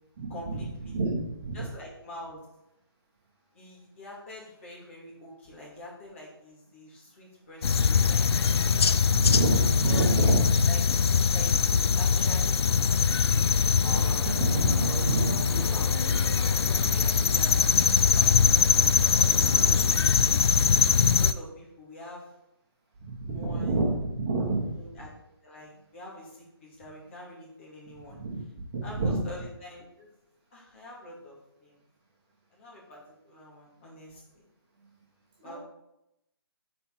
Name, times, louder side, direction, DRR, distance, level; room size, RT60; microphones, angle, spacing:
voice 1, 0.3-1.0 1.5-2.4 3.5-9.1 9.8-10.0 10.3-10.8 11.3-14.9 15.2-16.0 16.6-19.1 19.4-20.7 21.2-22.3 23.3-23.9 24.7-28.2 28.8-30.1 30.5-31.8 32.5-33.0 33.3-34.4 35.4-35.6, left 1 dB, 30° left, -4 dB, 2.3 m, -46 dB
voice 2, 0.9-1.6 9.1-10.6 14.2-15.4 23.2-24.7 28.1-28.4 28.7-29.2 35.4-35.6, right 2 dB, 20° right, -5 dB, 1.6 m, -28 dB
sound 1, 7.6-21.3, left 6 dB, 75° left, 0.4 m, -23 dB
sound 2, 13.8-19.8, right 1 dB, 5° right, 1.1 m, -40 dB
9.7 x 4.5 x 3.9 m, 0.86 s
hypercardioid pair, 170°, 13 cm